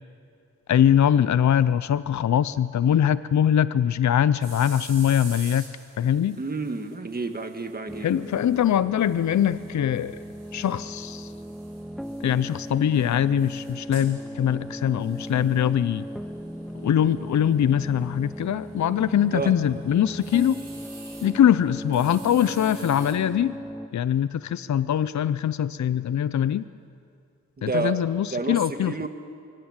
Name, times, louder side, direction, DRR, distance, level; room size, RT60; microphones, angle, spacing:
voice 1, 0.7-5.6 6.0-6.4 8.0-10.2 10.5-11.3 12.2-16.1 16.8-20.6 21.2-23.6 23.9-26.6 27.6-29.1, left 9 dB, 65° left, 15 dB, 0.5 m, -22 dB
sound 1, 4.4-23.1, right 3 dB, 55° right, 5.9 m, -49 dB
voice 2, 6.4-8.1 19.3-19.5 27.6-28.0 28.3-29.1, right 4 dB, 30° right, 7 dB, 1.7 m, -30 dB
sound 2, 7.9-23.9, equal, ahead, 0.6 m, -37 dB
25.0 x 23.5 x 8.8 m, 2.4 s
wide cardioid pair, 130°, 30 cm